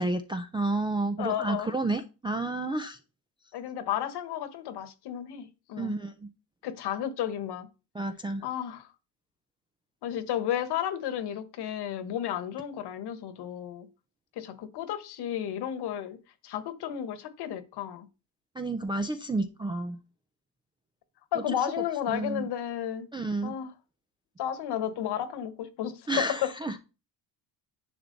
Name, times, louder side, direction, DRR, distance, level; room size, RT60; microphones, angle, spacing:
voice 1, 0.0-3.0 5.8-6.3 7.9-8.4 18.6-20.0 22.1-22.5 23.1-23.5 26.1-26.8, right 2 dB, 10° right, 0.3 m, -30 dB
voice 2, 1.2-1.7 3.5-6.0 6.6-7.7 8.4-8.9 10.0-13.9 14.4-16.2 16.4-18.1 21.3-23.1 23.4-23.7 24.4-26.5, left 10 dB, 60° left, 1.3 m, -33 dB
10.0 x 6.0 x 3.9 m
cardioid pair, 145°, 45 cm